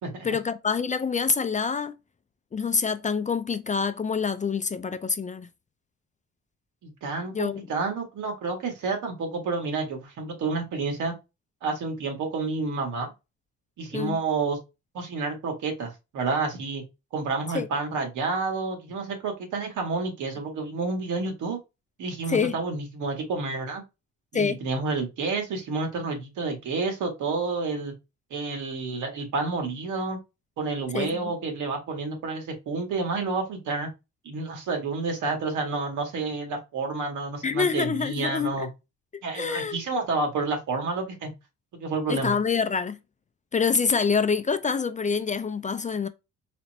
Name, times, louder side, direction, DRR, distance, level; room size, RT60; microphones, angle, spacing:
voice 1, 0.2-2.0 2.5-5.5 7.3-7.7 13.9-14.2 17.5-17.7 22.3-22.5 24.3-24.6 30.9-31.3 37.4-38.7 39.1-39.8 42.1-43.0 43.5-46.1, left 5 dB, 25° left, 0.4 m, -26 dB
voice 2, 6.8-11.1 11.6-13.1 13.8-14.6 14.9-16.8 17.1-21.6 22.0-23.8 24.3-27.9 28.3-30.2 30.6-33.9 34.2-38.7 39.2-41.3 41.7-42.4, right 3 dB, 80° right, 1.7 m, -29 dB
4.2 x 2.0 x 4.2 m
cardioid pair, 90°, 30 cm